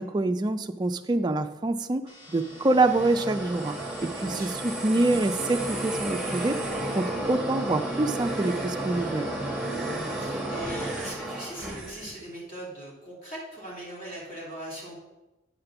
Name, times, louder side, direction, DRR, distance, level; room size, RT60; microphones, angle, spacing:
voice 1, 0.0-3.7 4.0-6.6 6.9-9.4, right 2 dB, 20° right, 8 dB, 0.3 m, -26 dB
sound 1, 2.1-11.1, left 1 dB, 80° left, 2.9 m, -50 dB
sound 2, 2.4-12.2, right 1 dB, ahead, 1.2 m, -32 dB
voice 2, 4.1-4.8 9.8-15.0, right 1 dB, 40° left, -4 dB, 3.1 m, -40 dB
8.8 x 5.1 x 5.8 m, 1.0 s
head